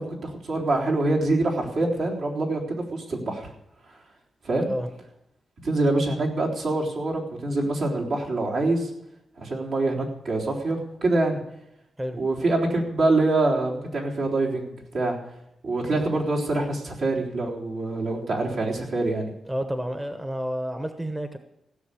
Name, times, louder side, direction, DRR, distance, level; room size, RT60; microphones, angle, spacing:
voice 1, 0.0-3.5 3.9-4.0 4.4-4.7 5.6-8.9 9.4-11.4 12.2-15.2 15.6-19.3, right 2 dB, 70° right, -3 dB, 3.7 m, -25 dB
voice 2, 19.5-21.4, equal, 15° right, 7 dB, 1.0 m, -30 dB
16.0 x 6.7 x 8.4 m, 0.84 s
cardioid pair, 100°, 0 cm